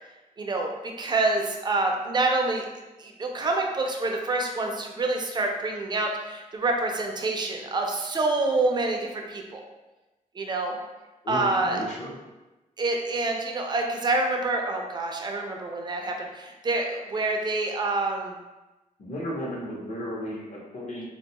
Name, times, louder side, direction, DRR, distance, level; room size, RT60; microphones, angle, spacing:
voice 1, 0.4-2.6 3.0-9.6 10.4-10.8 11.3-11.8 12.8-18.4, right 2 dB, 30° right, 2 dB, 0.3 m, -27 dB
voice 2, 11.2-12.2 19.0-21.1, equal, 60° left, -3 dB, 0.7 m, -34 dB
2.5 x 2.2 x 2.8 m, 1.1 s
wide cardioid pair, 155°, 14 cm